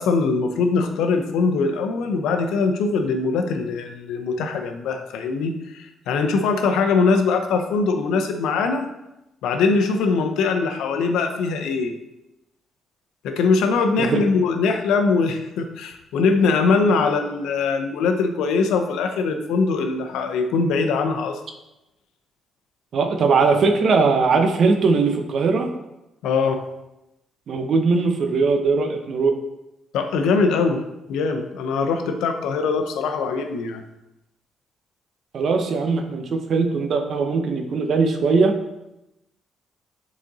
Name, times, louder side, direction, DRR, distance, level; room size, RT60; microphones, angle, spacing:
voice 1, 0.0-8.9 9.4-11.9 13.2-21.4 26.2-26.6 29.9-30.8 31.1-33.8, left 4 dB, 85° left, 6 dB, 0.7 m, -22 dB
voice 2, 22.9-25.7 27.5-29.3 35.3-38.5, right 4 dB, 60° right, 5 dB, 0.8 m, -20 dB
6.3 x 4.2 x 4.0 m, 0.92 s
cardioid pair, 90°, 0 cm